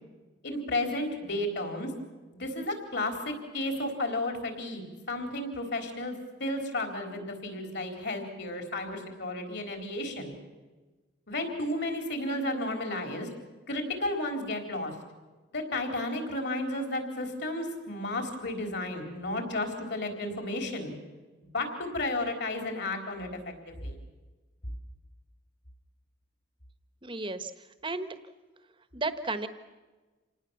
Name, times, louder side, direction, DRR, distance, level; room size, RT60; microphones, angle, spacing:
voice 1, 0.4-1.9 2.3-10.4 11.3-13.3 13.7-14.9 15.5-20.9 21.5-23.3 23.7-24.0, left 1 dB, 55° left, 4 dB, 4.2 m, -33 dB
voice 2, 27.0-28.1 28.9-29.5, right 3 dB, 25° right, 10 dB, 1.3 m, -34 dB
27.0 x 19.0 x 7.2 m, 1.2 s
head